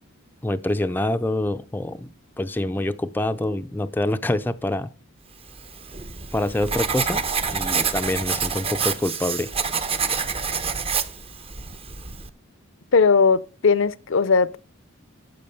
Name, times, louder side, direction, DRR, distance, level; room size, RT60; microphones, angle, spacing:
voice 1, 0.4-2.1 2.4-4.9 6.3-7.2 7.5-9.5, left 1 dB, 10° left, 0.4 m, -26 dB
Writing, 5.6-12.3, right 5 dB, 25° right, 0.7 m, -27 dB
voice 2, 12.9-14.6, left 5 dB, 60° left, 0.5 m, -18 dB
8.5 x 7.2 x 6.9 m
head